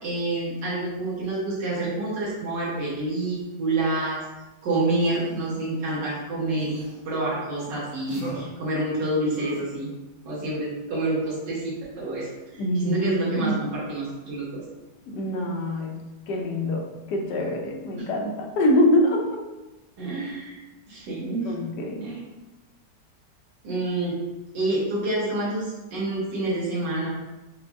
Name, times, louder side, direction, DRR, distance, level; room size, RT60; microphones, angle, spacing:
voice 1, 0.0-4.2 4.6-9.9 10.3-14.6 18.0-18.1 20.0-20.6 20.9-21.5 22.0-22.2 23.6-24.1 24.5-27.1, right 2 dB, 90° right, -7 dB, 1.8 m, -28 dB
sound 1, 5.0-5.6 6.5-7.0 7.6-7.7 8.1-8.4 9.3-9.6, right 2 dB, 60° right, 1.6 m, -37 dB
voice 2, 12.6-13.6 15.1-16.0 16.3-19.4 21.4-22.1, left 1 dB, 75° left, 1 dB, 1.2 m, -25 dB
5.0 x 2.2 x 3.5 m, 1.1 s
omnidirectional pair, 1.9 m